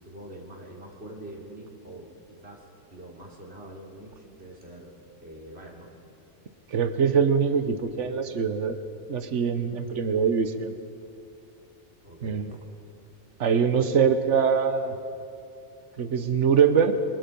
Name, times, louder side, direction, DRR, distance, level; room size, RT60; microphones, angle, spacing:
voice 1, 0.0-5.9 12.0-12.6 16.3-16.5, right 1 dB, 55° right, -2 dB, 3.8 m, -45 dB
voice 2, 6.7-8.8 9.1-10.7 12.2-12.5 13.4-15.0 16.0-16.9, right 6 dB, 75° right, 9 dB, 1.4 m, -23 dB
27.0 x 24.0 x 5.4 m, 2.7 s
omnidirectional pair, 1.3 m